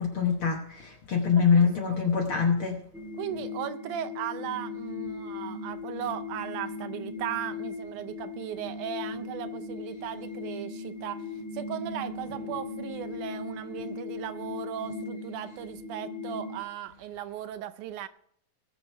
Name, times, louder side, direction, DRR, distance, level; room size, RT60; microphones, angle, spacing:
voice 1, 0.0-2.8, left 6 dB, 55° left, 1.6 m, -24 dB
voice 2, 1.4-2.0 3.2-11.3 11.5-18.1, right 11 dB, 80° right, 2.0 m, -37 dB
sound 1, 2.9-16.6, left 4 dB, ahead, 0.9 m, -38 dB
19.5 x 6.9 x 4.3 m
omnidirectional pair, 3.7 m